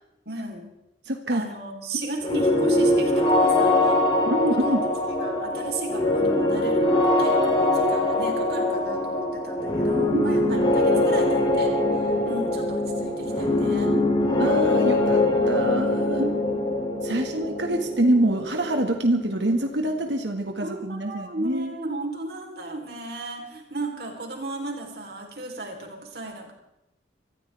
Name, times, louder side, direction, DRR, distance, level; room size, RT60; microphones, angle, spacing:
voice 1, 0.3-0.7 1.3-4.0 4.5-4.8 5.1-11.7 12.2-14.0 16.1-16.8 20.6-26.5, right 2 dB, 60° right, 2 dB, 3.9 m, -35 dB
voice 2, 1.1-1.4 4.3-4.8 10.1-10.3 14.4-16.2 17.0-21.7, right 1 dB, 85° right, 3 dB, 1.9 m, -25 dB
sound 1, 2.2-19.9, left 1 dB, 30° left, 2.9 m, -23 dB
25.5 x 14.5 x 3.5 m, 0.88 s
head